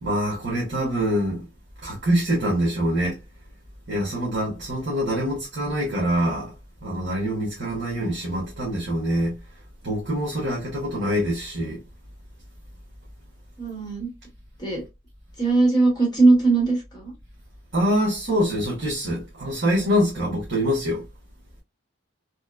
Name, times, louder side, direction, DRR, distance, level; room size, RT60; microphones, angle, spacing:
voice 1, 0.0-1.4 1.8-3.2 3.9-6.5 6.8-9.3 9.8-11.8 17.7-21.0, equal, 60° right, 1.0 m, -24 dB
voice 2, 13.6-14.1 14.6-14.8 15.4-17.1, right 3 dB, 20° left, 1.0 m, -20 dB
2.9 x 2.1 x 2.2 m
head